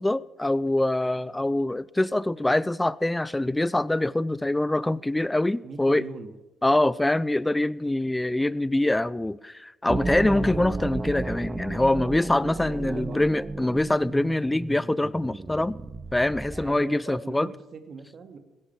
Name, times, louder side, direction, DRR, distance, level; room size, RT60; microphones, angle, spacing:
voice 1, 0.0-6.0 6.6-15.8 16.1-17.5, left 1 dB, 10° left, 0.6 m, -24 dB
voice 2, 5.6-6.3 12.5-13.3 16.5-18.4, right 4 dB, 50° right, 2.2 m, -40 dB
sound 1, 9.9-16.8, right 3 dB, 25° right, 1.3 m, -33 dB
17.0 x 13.5 x 4.7 m
hypercardioid pair, 50°, 0 cm